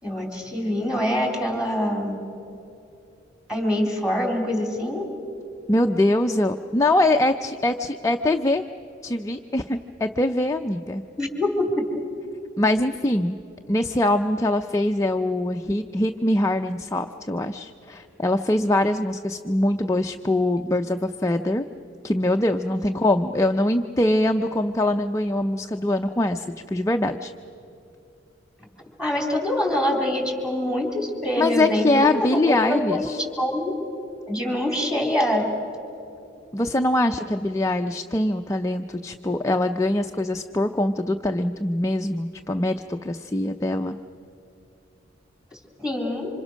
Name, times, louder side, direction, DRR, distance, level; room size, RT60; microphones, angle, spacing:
voice 1, 0.0-2.2 3.5-5.0 11.2-11.8 29.0-33.7 34.3-35.4 45.8-46.3, left 1 dB, 5° right, 1 dB, 3.7 m, -25 dB
voice 2, 5.7-8.6 9.0-11.0 12.6-13.4 13.7-21.6 22.0-26.5 26.7-27.3 31.4-33.2 36.5-44.0, left 1 dB, 15° left, 5 dB, 0.5 m, -23 dB
27.0 x 26.0 x 6.3 m, 2.8 s
head